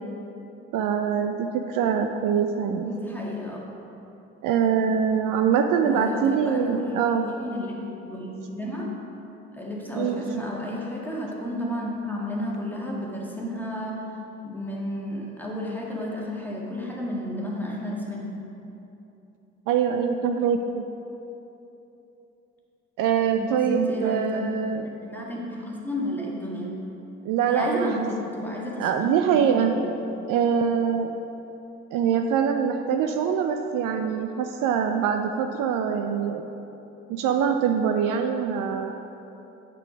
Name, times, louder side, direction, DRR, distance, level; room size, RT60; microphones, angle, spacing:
voice 1, 0.7-2.9 4.4-7.3 9.9-10.2 19.7-20.8 23.0-24.8 27.2-28.0 28.8-29.8 30.3-31.1 31.9-36.5 37.1-39.0, right 7 dB, 55° right, 5 dB, 0.6 m, -24 dB
voice 2, 2.8-3.6 5.8-7.8 8.1-8.9 9.5-14.1 14.4-18.3 23.4-24.4 24.7-26.8 27.5-28.9 29.2-29.4 29.7-29.9, left 1 dB, 5° left, -4 dB, 1.8 m, -32 dB
7.6 x 7.0 x 5.0 m, 3.0 s
hypercardioid pair, 60°, 38 cm